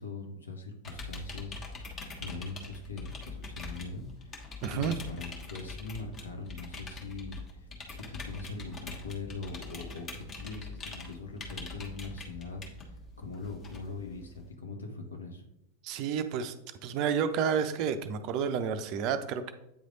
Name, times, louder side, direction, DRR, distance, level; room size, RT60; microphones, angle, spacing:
voice 1, 0.0-1.9 2.2-15.5, left 3 dB, 75° left, 3 dB, 1.1 m, -42 dB
sound 1, 0.8-14.5, left 3 dB, 25° left, 1.3 m, -43 dB
voice 2, 4.6-4.9 15.8-16.5 16.8-19.5, right 7 dB, 40° right, 10 dB, 0.5 m, -30 dB
8.6 x 3.3 x 3.9 m, 0.86 s
figure-of-eight pair, 90°, 0 cm